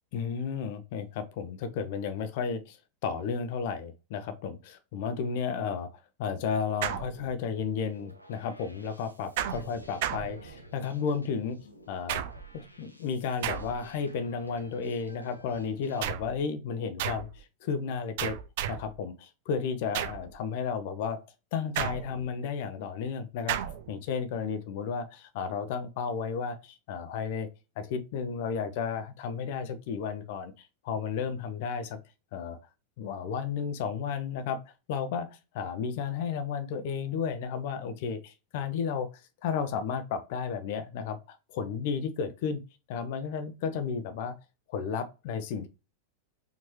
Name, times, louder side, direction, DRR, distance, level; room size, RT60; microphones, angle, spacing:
voice 1, 0.1-2.8 3.0-11.6 11.9-12.2 12.5-18.4 18.7-21.2 21.5-23.6 23.9-27.5 27.8-32.0 32.3-32.6 33.0-34.6 34.9-39.1 39.4-42.6 42.9-44.3 44.7-45.7, left 6 dB, 50° left, 0.6 m, -33 dB
sound 1, 6.8-7.7 9.4-10.9 12.1-12.7 13.4-14.0 16.0-16.4 17.0-17.4 18.2-19.0 19.9-20.4 21.8-22.4 23.5-23.9, right 10 dB, 50° right, 0.4 m, -34 dB
sound 2, 7.5-16.0, equal, 90° left, 0.7 m, -53 dB
4.4 x 2.9 x 3.1 m
figure-of-eight pair, 90°, 0 cm